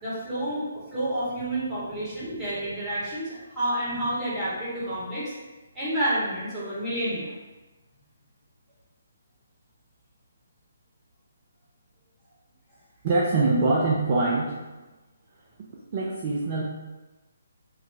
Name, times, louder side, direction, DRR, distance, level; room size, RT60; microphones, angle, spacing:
voice 1, 0.0-5.3 5.7-7.3, right 1 dB, 5° right, -12 dB, 1.1 m, -29 dB
voice 2, 13.0-14.6 15.9-16.6, right 3 dB, 30° right, -4 dB, 0.4 m, -23 dB
2.9 x 2.4 x 3.2 m, 1.2 s
figure-of-eight pair, 140°, 0 cm